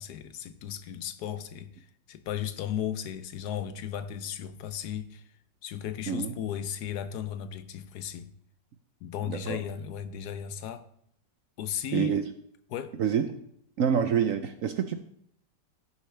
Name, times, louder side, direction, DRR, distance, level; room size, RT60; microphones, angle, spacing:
voice 1, 0.0-5.3 5.6-8.3 9.0-10.9 11.6-12.2 12.7-13.0, left 9 dB, 70° left, 1.1 m, -35 dB
voice 2, 9.3-9.6 11.9-12.2 13.0-13.3 13.8-14.9, right 8 dB, 65° right, 0.8 m, -27 dB
17.0 x 7.0 x 3.3 m
omnidirectional pair, 1.9 m